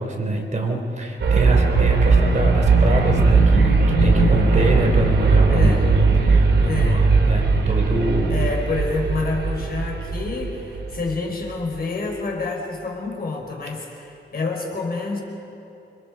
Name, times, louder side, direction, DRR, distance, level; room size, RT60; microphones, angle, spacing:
voice 1, 0.0-6.5 6.8-8.5, right 2 dB, 40° right, 1 dB, 3.7 m, -25 dB
sound 1, 1.2-11.1, right 3 dB, 85° right, 3.4 m, -18 dB
voice 2, 4.0-4.5 5.5-5.9 6.6-7.1 8.3-15.2, left 3 dB, 55° left, 1 dB, 4.8 m, -27 dB
29.0 x 25.5 x 5.1 m, 2.9 s
wide cardioid pair, 100°, 19 cm